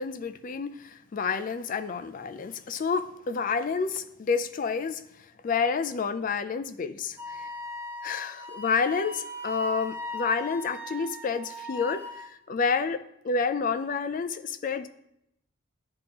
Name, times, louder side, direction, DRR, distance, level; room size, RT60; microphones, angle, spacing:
voice 1, 0.0-5.0 5.4-7.5 8.0-12.0 12.5-14.9, left 5 dB, 40° left, 10 dB, 0.3 m, -29 dB
Wind instrument woodwind instrument, 7.2-12.3, left 2 dB, 10° right, 0.6 m, -39 dB
10.0 x 3.5 x 2.9 m, 0.78 s
head